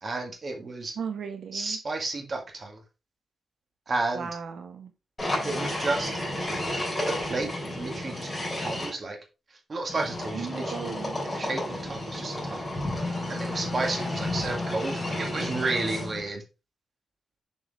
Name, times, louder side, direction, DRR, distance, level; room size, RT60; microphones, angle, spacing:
voice 1, 0.0-1.0 1.5-2.8 3.9-4.3 5.4-6.2 7.1-8.3 8.6-9.2 9.7-11.0 11.2-16.4, right 3 dB, 40° right, 1.8 m, -32 dB
voice 2, 0.9-1.8 4.1-4.9 10.3-11.5, right 6 dB, 85° right, 1.3 m, -37 dB
sound 1, 5.2-8.9 9.9-16.3, left 1 dB, 15° left, 3.4 m, -32 dB
7.2 x 4.9 x 3.5 m
wide cardioid pair, 140°, 0 cm